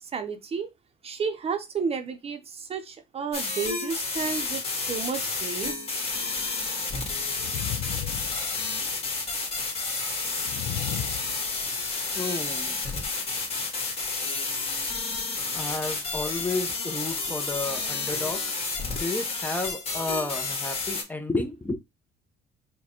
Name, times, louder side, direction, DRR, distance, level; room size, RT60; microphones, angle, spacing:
voice 1, 0.0-0.7 1.0-5.8, right 6 dB, 35° right, 0.7 m, -32 dB
sound 1, 3.3-21.0, left 3 dB, 35° left, 1.8 m, -30 dB
sound 2, 5.6-5.7 7.4-9.0 10.4-11.8, left 11 dB, 75° left, 0.5 m, -34 dB
voice 2, 12.1-12.9 15.5-18.4 18.9-21.8, left 2 dB, 10° left, 0.6 m, -32 dB
4.8 x 2.2 x 4.3 m
cardioid pair, 110°, 17 cm